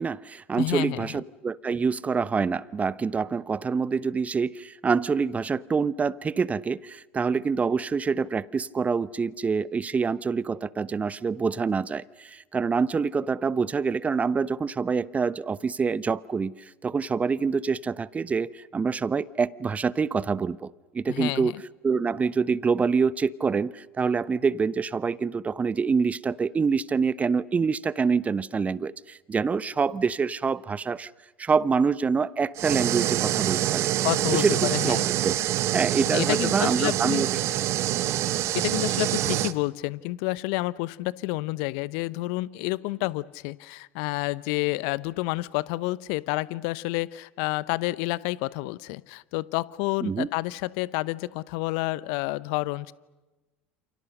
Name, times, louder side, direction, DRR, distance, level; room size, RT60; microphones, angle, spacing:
voice 1, 0.0-21.5 21.8-31.1 31.4-33.9 34.3-35.0 35.2-35.3 35.7-37.3 50.0-50.3, right 5 dB, 25° right, 19 dB, 0.9 m, -26 dB
voice 2, 0.6-1.2 21.1-21.5 34.0-35.1 36.1-37.2 38.5-52.9, left 21 dB, 60° left, 19 dB, 0.9 m, -29 dB
sound 1, 32.6-39.5, right 13 dB, 50° right, 1.3 m, -26 dB
30.0 x 28.5 x 6.7 m, 1.1 s
figure-of-eight pair, 70°, 6 cm